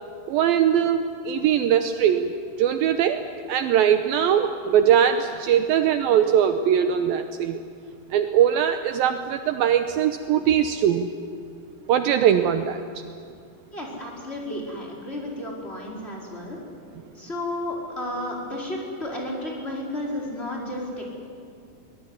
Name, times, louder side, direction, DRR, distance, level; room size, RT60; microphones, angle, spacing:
voice 1, 0.3-7.6 8.1-11.1 11.9-13.0, right 9 dB, 75° right, 7 dB, 2.4 m, -21 dB
voice 2, 13.7-16.6 17.1-21.1, left 1 dB, 15° left, -3 dB, 4.7 m, -32 dB
24.0 x 20.0 x 9.7 m, 2.4 s
omnidirectional pair, 4.6 m